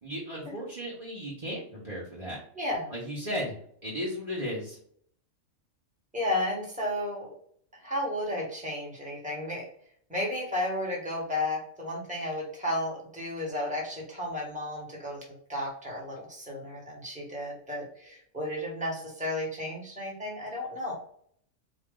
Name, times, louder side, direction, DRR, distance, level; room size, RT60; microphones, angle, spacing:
voice 1, 0.0-2.4 2.9-3.6 3.8-4.8, equal, 30° right, -7 dB, 1.1 m, -35 dB
voice 2, 2.6-2.9 6.1-7.3 7.8-9.6 10.1-15.2 15.5-20.9, left 1 dB, 5° right, -3 dB, 1.4 m, -33 dB
4.5 x 2.5 x 3.7 m, 0.63 s
omnidirectional pair, 1.3 m